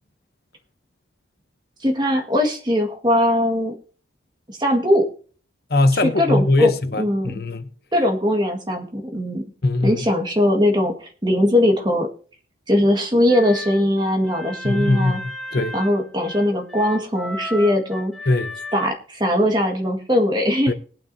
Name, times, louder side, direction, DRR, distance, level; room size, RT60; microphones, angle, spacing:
voice 1, 1.8-3.8 4.6-5.1 6.0-6.7 7.0-7.3 7.9-9.4 9.8-12.1 12.7-15.2 15.7-18.1 18.7-20.7, left 1 dB, 25° right, 1.7 m, -20 dB
voice 2, 5.7-7.7 9.6-10.0 14.6-15.8 18.3-18.6 20.7-20.8, left 2 dB, 55° left, 0.8 m, -21 dB
sound 1, 13.3-18.9, left 1 dB, ahead, 1.3 m, -35 dB
20.0 x 9.1 x 2.7 m
head